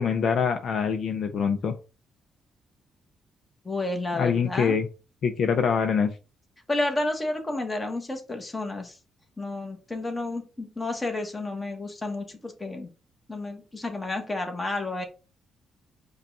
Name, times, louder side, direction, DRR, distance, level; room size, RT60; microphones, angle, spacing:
voice 1, 0.0-1.7 4.1-4.9 5.2-6.1, left 6 dB, 60° left, 7 dB, 0.5 m, -24 dB
voice 2, 3.6-4.8 6.7-9.0 9.4-12.9 13.3-15.0, left 2 dB, 20° left, 4 dB, 1.2 m, -31 dB
5.1 x 2.4 x 4.0 m, 0.32 s
cardioid pair, 90°, 0 cm